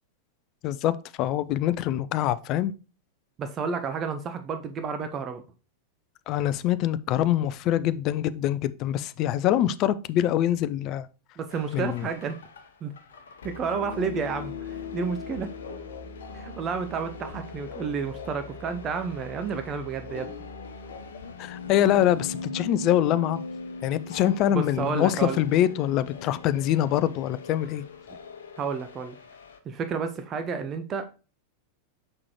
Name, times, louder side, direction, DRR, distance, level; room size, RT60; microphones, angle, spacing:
voice 1, 0.6-0.9 1.2-2.7 6.3-11.1 11.7-12.1 21.4-23.4 23.8-27.8, left 12 dB, 40° left, 0.5 m, -24 dB
voice 2, 3.4-5.4 11.4-12.4 12.8-12.9 13.4-15.5 16.3-20.3 24.5-25.4 28.6-29.2 29.7-31.1, right 6 dB, 25° right, 0.8 m, -31 dB
sound 1, 11.5-29.6, left 4 dB, 65° left, 0.9 m, -40 dB
6.5 x 6.0 x 3.0 m
figure-of-eight pair, 90°, 0 cm